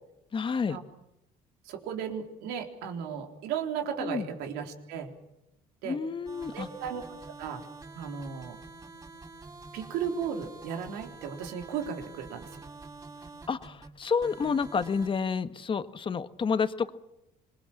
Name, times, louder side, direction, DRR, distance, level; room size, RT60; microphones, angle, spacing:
voice 1, 0.3-0.8 4.0-4.2 5.8-6.7 13.5-16.9, left 5 dB, 30° left, 10 dB, 1.6 m, -29 dB
voice 2, 1.6-5.1 5.8-6.0 6.5-7.0 7.4-7.6 8.0-8.6 9.7-12.6, right 7 dB, 85° right, 4 dB, 3.8 m, -35 dB
sound 1, 6.3-15.1, right 3 dB, 20° right, 6.5 m, -47 dB
26.5 x 22.0 x 7.3 m, 0.87 s
cardioid pair, 105°, 16 cm